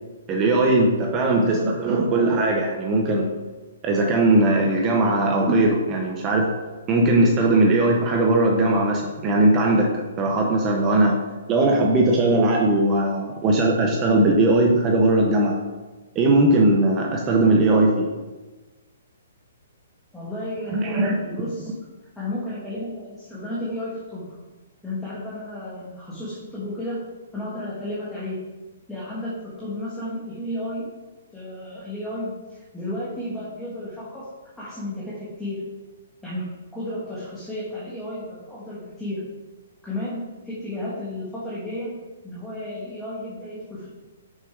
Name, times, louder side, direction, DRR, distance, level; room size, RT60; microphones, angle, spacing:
voice 1, 0.3-3.3 3.8-6.5 6.9-11.2 11.5-15.6 16.1-18.1 20.7-21.2, right 2 dB, 15° right, 0 dB, 0.7 m, -19 dB
voice 2, 20.1-21.7 22.1-24.3 24.8-27.0 27.3-28.5 28.9-30.9 31.3-34.3 34.6-35.7 36.2-39.2 39.8-40.2 40.4-41.9 42.2-43.9, left 1 dB, 5° left, -9 dB, 1.3 m, -33 dB
6.3 x 6.0 x 5.1 m, 1.2 s
hypercardioid pair, 175°, 0 cm